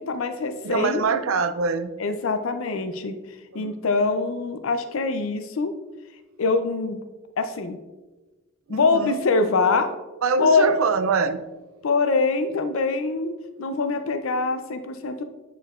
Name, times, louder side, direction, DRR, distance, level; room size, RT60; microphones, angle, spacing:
voice 1, 0.1-1.0 2.0-3.2 3.5-5.7 6.4-7.0 7.4-7.8 8.7-9.9 10.4-10.8 11.8-15.2, left 3 dB, 80° left, 8 dB, 0.5 m, -23 dB
voice 2, 0.6-1.9 3.5-3.8 8.7-9.2 10.2-11.5, right 5 dB, 90° right, 11 dB, 0.4 m, -24 dB
8.8 x 4.5 x 2.4 m, 1.2 s
head